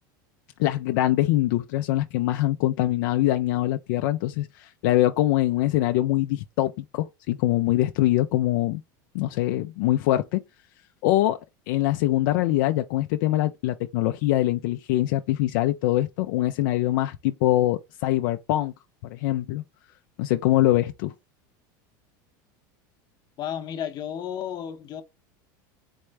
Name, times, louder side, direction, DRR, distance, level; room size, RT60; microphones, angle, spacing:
voice 1, 0.6-8.8 9.1-10.4 11.0-11.4 11.7-18.7 19.1-19.6 20.2-21.1, left 15 dB, 70° left, 0.5 m, -23 dB
voice 2, 23.4-25.0, left 9 dB, 40° left, 0.8 m, -32 dB
4.4 x 3.2 x 3.3 m
supercardioid pair, 125°, 11 cm